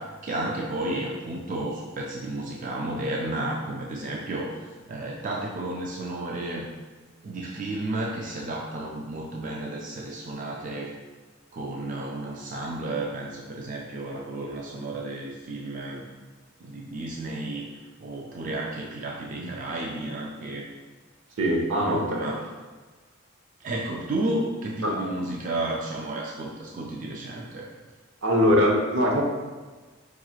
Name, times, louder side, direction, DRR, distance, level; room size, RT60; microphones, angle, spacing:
voice 1, 0.0-6.7 7.2-10.9 11.5-16.0 16.6-17.6 18.0-20.7 21.8-22.5 23.6-27.7, right 2 dB, 40° right, -2 dB, 0.3 m, -32 dB
voice 2, 21.4-22.3 24.8-25.0 28.2-29.2, equal, 75° right, 0 dB, 0.7 m, -22 dB
4.6 x 2.9 x 2.3 m, 1.3 s
head